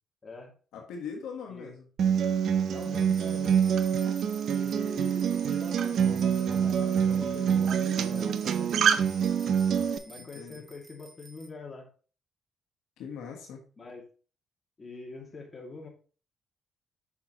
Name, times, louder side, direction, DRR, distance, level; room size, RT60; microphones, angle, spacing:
voice 1, 0.2-0.5 1.5-1.7 2.7-3.6 4.5-8.7 10.0-11.9 13.8-14.0 14.8-15.9, left 3 dB, 30° left, 2.0 m, -44 dB
voice 2, 0.7-1.9 10.2-10.6 13.0-13.6, left 6 dB, 85° left, 1.2 m, -41 dB
Acoustic guitar, 2.0-10.0, right 8 dB, 65° right, 0.5 m, -26 dB
sound 1, 2.8-11.5, right 2 dB, 20° right, 1.3 m, -51 dB
6.0 x 5.6 x 2.9 m
cardioid pair, 90°, 0 cm